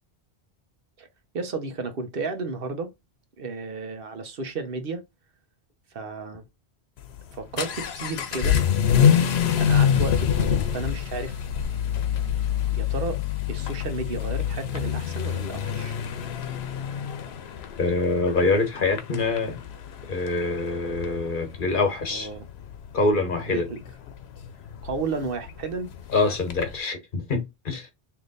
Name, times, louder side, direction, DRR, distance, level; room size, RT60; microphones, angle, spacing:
voice 1, 1.3-2.9 3.4-5.0 5.9-6.4 7.3-8.6 9.6-11.4 12.7-13.2 13.5-16.0 22.1-22.5 23.5-23.8 24.8-25.9, right 4 dB, 65° right, 1.0 m, -33 dB
Vehicle / Accelerating revving vroom, 7.0-26.8, left 8 dB, 85° left, 0.9 m, -26 dB
voice 2, 17.8-19.6 20.1-22.3 22.9-23.7 26.1-27.9, left 3 dB, 55° left, 1.3 m, -25 dB
3.3 x 2.8 x 3.9 m
omnidirectional pair, 1.0 m